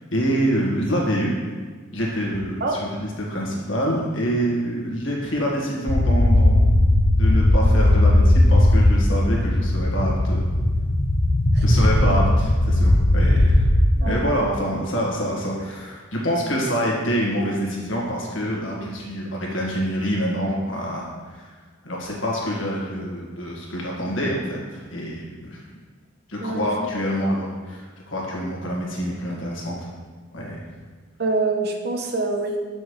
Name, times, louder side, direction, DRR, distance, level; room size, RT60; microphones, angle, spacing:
voice 1, 0.1-1.3 1.9-6.7 7.2-10.5 11.6-13.7 13.9-21.5 21.8-25.6 26.3-29.8 30.3-30.7, equal, 85° left, -3 dB, 1.8 m, -26 dB
sound 1, 5.9-13.8, left 1 dB, 55° left, 0.8 m, -17 dB
voice 2, 31.2-32.6, right 3 dB, 55° right, 3 dB, 0.9 m, -25 dB
7.7 x 6.4 x 3.3 m, 1.5 s
head